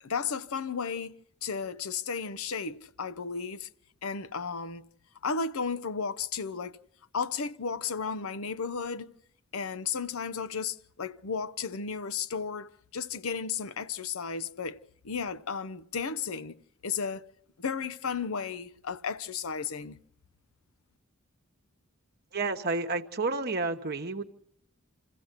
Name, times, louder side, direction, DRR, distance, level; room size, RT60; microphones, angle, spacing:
voice 1, 0.0-1.1 1.4-3.7 4.0-4.8 5.2-6.8 7.1-9.1 9.5-14.8 15.0-16.6 16.8-17.3 17.6-20.0, left 5 dB, 90° left, 0.8 m, -34 dB
voice 2, 22.3-24.2, right 3 dB, 50° right, 1.0 m, -30 dB
27.0 x 15.5 x 8.1 m
head